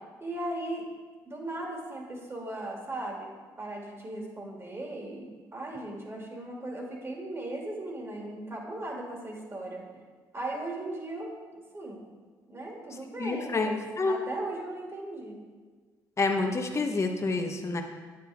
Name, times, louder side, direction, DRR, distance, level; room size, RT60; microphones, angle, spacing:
voice 1, 0.2-0.9 1.3-3.3 3.6-9.8 10.3-12.1 12.5-15.4, right 1 dB, 30° right, -1 dB, 2.4 m, -37 dB
voice 2, 13.2-14.2 16.2-17.8, left 3 dB, 30° left, 3 dB, 1.0 m, -28 dB
9.0 x 7.8 x 3.5 m, 1.4 s
supercardioid pair, 60°, 9 cm